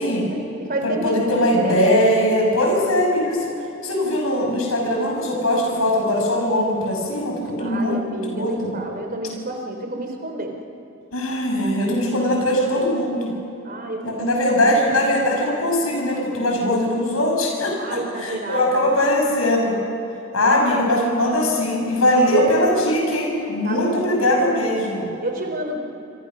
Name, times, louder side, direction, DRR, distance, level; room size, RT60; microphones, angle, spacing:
voice 1, 0.0-1.9 7.6-10.6 13.6-15.1 17.8-18.9 20.4-21.2 22.1-22.5 23.6-24.5 25.2-25.8, right 1 dB, 45° right, 3 dB, 4.0 m, -30 dB
voice 2, 0.8-3.5 3.8-7.9 8.2-8.7 11.1-13.3 14.0-19.8 20.3-25.1, left 1 dB, 85° left, 0 dB, 6.3 m, -20 dB
27.0 x 27.0 x 6.3 m, 2.9 s
head